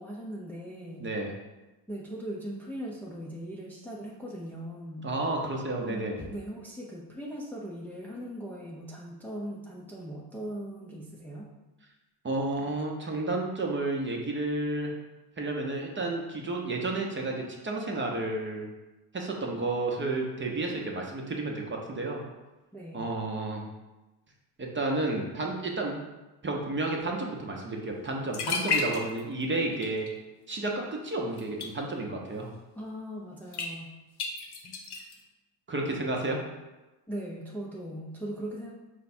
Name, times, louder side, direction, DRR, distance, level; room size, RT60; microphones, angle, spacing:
voice 1, 0.0-1.1 1.9-5.1 5.8-11.5 22.7-23.0 32.8-33.9 37.1-38.7, equal, 5° left, -3 dB, 0.6 m, -39 dB
voice 2, 1.0-1.3 5.0-6.2 12.2-14.9 15.4-18.7 19.1-22.2 22.9-23.7 24.6-26.0 26.4-30.1 30.5-32.5 35.7-36.4, right 2 dB, 25° right, 0 dB, 0.8 m, -31 dB
sound 1, 28.0-28.1 28.3-29.4 29.7-30.1 31.4-31.7 33.5-33.7 34.2-35.2, left 4 dB, 55° left, 0.9 m, -31 dB
4.6 x 2.2 x 4.3 m, 1.1 s
supercardioid pair, 80°, 48 cm